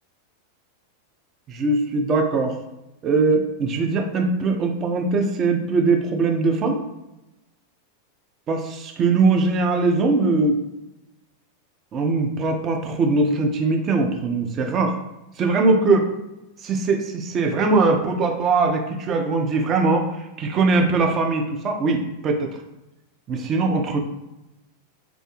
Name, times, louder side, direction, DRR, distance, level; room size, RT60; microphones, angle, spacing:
voice 1, 1.5-2.6 3.0-6.8 8.5-10.6 11.9-14.9 15.4-16.1 16.6-20.1 20.4-22.6 23.3-24.0, right 3 dB, 30° right, 3 dB, 0.4 m, -21 dB
2.5 x 2.1 x 2.9 m, 0.96 s
figure-of-eight pair, 90°, 0 cm